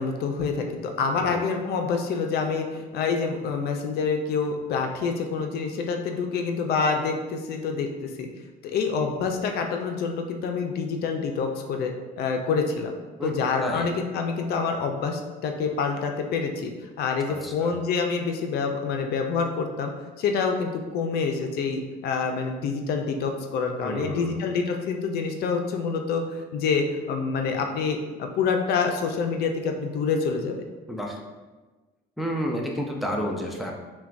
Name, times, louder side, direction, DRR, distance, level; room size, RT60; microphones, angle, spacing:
voice 1, 0.0-8.3 8.6-12.9 13.2-19.9 20.2-30.6, left 5 dB, 70° left, 4 dB, 0.5 m, -27 dB
voice 2, 17.4-17.7 23.8-24.4 30.9-31.2 32.2-33.7, equal, ahead, 0 dB, 0.5 m, -30 dB
5.7 x 2.2 x 2.6 m, 1.3 s
cardioid pair, 110°, 17 cm